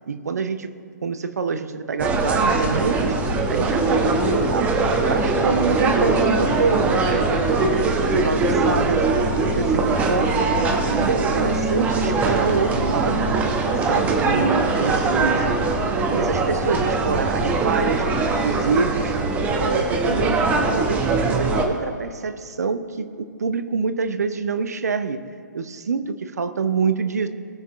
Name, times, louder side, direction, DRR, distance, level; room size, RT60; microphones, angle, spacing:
voice 1, 0.1-0.7 1.0-3.1 3.5-4.7 5.1-9.1 9.4-10.4 10.7-13.3 13.8-15.5 16.1-18.1 18.4-19.2 19.6-20.5 20.7-25.2 25.5-27.3, right 5 dB, 60° right, 11 dB, 0.8 m, -26 dB
sound 1, 2.0-21.7, right 3 dB, 15° right, 1.0 m, -21 dB
20.5 x 7.0 x 3.3 m, 2.4 s
figure-of-eight pair, 125°, 10 cm